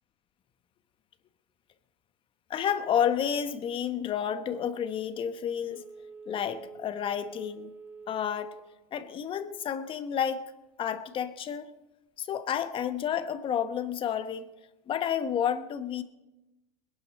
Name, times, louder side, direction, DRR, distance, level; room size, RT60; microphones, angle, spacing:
voice 1, 2.5-5.8 6.3-7.7 8.1-8.5 8.9-10.5 10.8-11.7 12.2-14.5 14.9-16.0, left 8 dB, 30° left, 1.0 m, -30 dB
Telephone, 5.7-8.8 9.2-9.3, right 4 dB, 10° right, 2.0 m, -47 dB
21.0 x 11.5 x 4.2 m
supercardioid pair, 130°, 17 cm